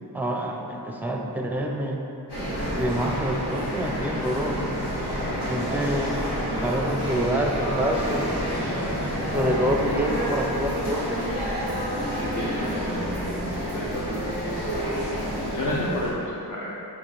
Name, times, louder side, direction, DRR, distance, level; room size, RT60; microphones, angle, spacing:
voice 1, 0.1-2.0 2.7-4.6 5.5-6.1 6.6-8.3 9.2-11.3, right 1 dB, 5° right, 1 dB, 0.4 m, -27 dB
sound 1, 2.3-16.1, equal, 80° left, 1.4 m, -28 dB
voice 2, 12.2-13.0 13.6-14.1 14.5-14.7 15.5-16.7, left 1 dB, 50° left, -6 dB, 0.6 m, -31 dB
4.6 x 2.9 x 3.8 m, 2.9 s
cardioid pair, 50°, 40 cm